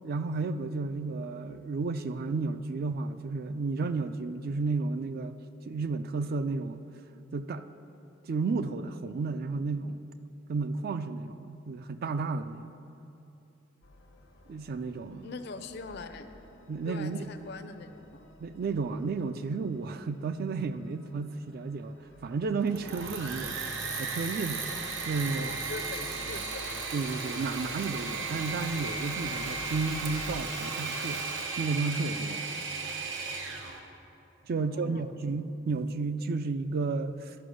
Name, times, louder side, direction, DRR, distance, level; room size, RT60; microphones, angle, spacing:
voice 1, 0.0-6.8 7.3-7.7 8.3-10.0 10.5-12.7 14.5-15.3 16.7-17.2 18.4-24.7 25.1-25.5 26.9-31.3 31.6-32.5 32.9-33.0 34.5-37.4, right 4 dB, 50° right, 11 dB, 0.3 m, -32 dB
sound 1, 13.8-30.4, left 1 dB, 90° left, 0.9 m, -51 dB
voice 2, 15.2-16.3 16.8-18.3 25.3-26.8 34.5-35.1, left 4 dB, 60° left, 9 dB, 0.5 m, -43 dB
Engine / Mechanisms, 22.6-33.8, right 4 dB, 70° right, 0.9 m, -35 dB
11.0 x 5.2 x 6.3 m, 2.9 s
head